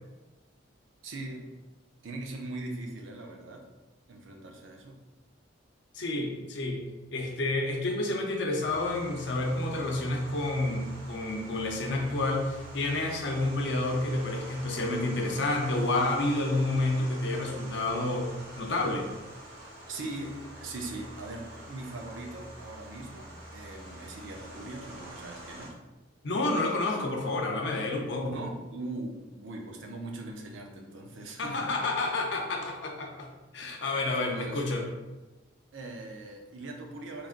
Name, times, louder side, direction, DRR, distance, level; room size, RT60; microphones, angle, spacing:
voice 1, 1.0-1.5 2.0-3.7 4.1-4.9 19.9-25.8 28.2-31.7 33.6-33.8 34.1-34.6 35.7-37.3, right 2 dB, 75° right, 1 dB, 0.6 m, -40 dB
voice 2, 5.9-6.8 7.1-18.3 18.5-19.1 26.2-28.4 31.4-34.8, left 2 dB, 60° left, 1 dB, 0.6 m, -29 dB
sound 1, 8.6-25.7, right 1 dB, 50° right, 1.3 m, -46 dB
3.8 x 3.2 x 2.5 m, 1.1 s
head